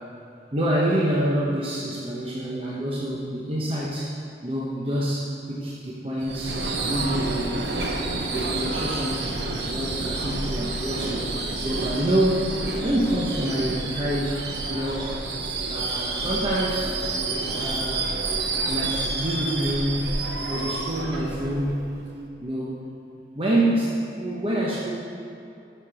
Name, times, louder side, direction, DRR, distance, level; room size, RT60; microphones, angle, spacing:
voice 1, 0.5-7.8 8.1-9.3 9.6-11.2 11.6-12.5 12.8-15.2 15.7-16.9 17.5-18.1 18.7-22.0 22.4-22.8 23.4-24.9, right 1 dB, 30° right, -5 dB, 0.9 m, -27 dB
Subway metro underground / Screech, 6.2-22.1, right 3 dB, 70° right, 0.9 m, -29 dB
7.4 x 6.6 x 6.3 m, 2.6 s
head